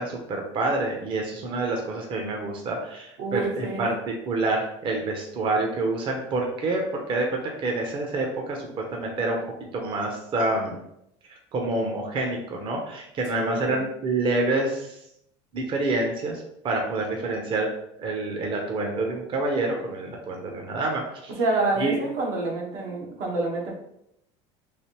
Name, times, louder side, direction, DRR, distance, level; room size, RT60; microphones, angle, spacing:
voice 1, 0.0-9.4 9.7-10.7 11.3-15.0 15.5-17.7 18.0-21.3 21.7-22.0, right 2 dB, 35° right, 1 dB, 0.6 m, -27 dB
voice 2, 3.2-3.9 13.4-13.8 21.4-23.7, right 3 dB, 75° right, -1 dB, 1.0 m, -27 dB
3.3 x 2.5 x 2.8 m, 0.78 s
supercardioid pair, 110°, 14 cm